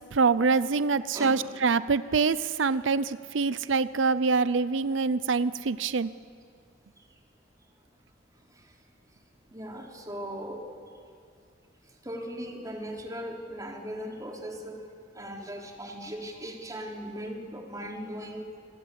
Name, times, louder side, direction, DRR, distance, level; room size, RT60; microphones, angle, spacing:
voice 1, 0.1-6.1, right 4 dB, 75° right, 16 dB, 0.6 m, -25 dB
voice 2, 9.5-10.6 12.0-14.8 15.1-18.7, equal, 20° right, 0 dB, 3.7 m, -38 dB
27.0 x 21.0 x 8.7 m, 2.2 s
head